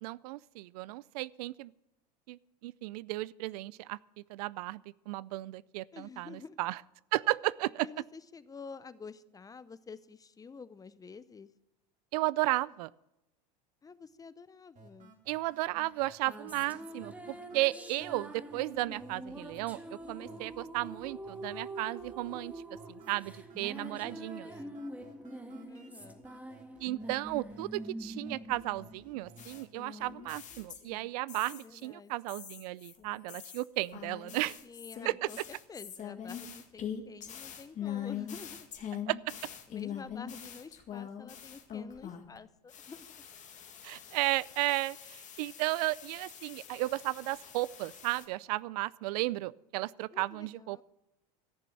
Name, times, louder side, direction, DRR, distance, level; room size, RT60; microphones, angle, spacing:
voice 1, 0.0-1.7 2.3-6.8 7.1-7.9 12.1-12.9 15.3-19.8 20.1-22.5 22.9-24.5 26.8-34.6 35.1-35.2 39.1-39.3 43.8-50.8, right 19 dB, 70° right, 21 dB, 0.4 m, -34 dB
voice 2, 5.9-6.6 7.8-11.5 13.8-15.2 20.0-20.5 23.8-24.8 25.7-26.2 31.5-32.1 34.6-38.7 39.7-43.2 50.1-50.8, left 5 dB, 15° left, 16 dB, 0.6 m, -49 dB
sound 1, 14.8-30.8, right 4 dB, 35° right, 2.9 m, -57 dB
sound 2, 16.0-29.6, right 1 dB, 5° right, 1.8 m, -45 dB
sound 3, 29.4-31.8 32.3-42.4 42.7-48.2, left 9 dB, 35° left, 2.0 m, -43 dB
14.5 x 6.8 x 7.5 m, 0.90 s
hypercardioid pair, 95°, 21 cm